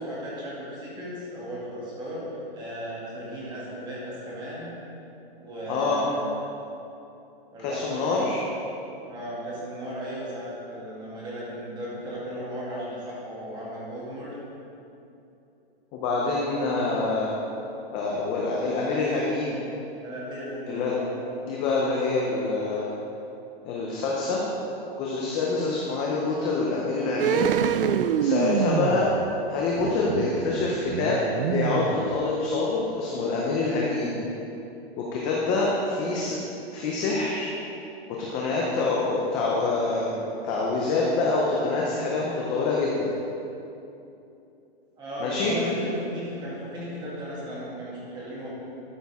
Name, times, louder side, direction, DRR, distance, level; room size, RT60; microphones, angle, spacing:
voice 1, 0.0-2.2 2.5-4.7 5.4-6.2 7.5-8.2 9.1-14.3 20.0-21.1 45.0-48.5, equal, 15° right, -7 dB, 2.1 m, -36 dB
voice 2, 5.7-6.0 7.6-8.4 15.9-17.3 17.9-19.6 20.7-20.9 21.4-22.9 23.6-24.4 25.0-27.5 28.2-29.1 29.5-31.2 31.5-34.2 35.0-36.4 36.7-37.5 38.1-43.1 45.2-45.5, left 3 dB, 15° left, -4 dB, 0.5 m, -26 dB
sound 1, 27.2-32.6 32.9-33.0, right 8 dB, 65° right, 0.5 m, -27 dB
12.5 x 6.2 x 3.5 m, 2.8 s
hypercardioid pair, 160°, 30 cm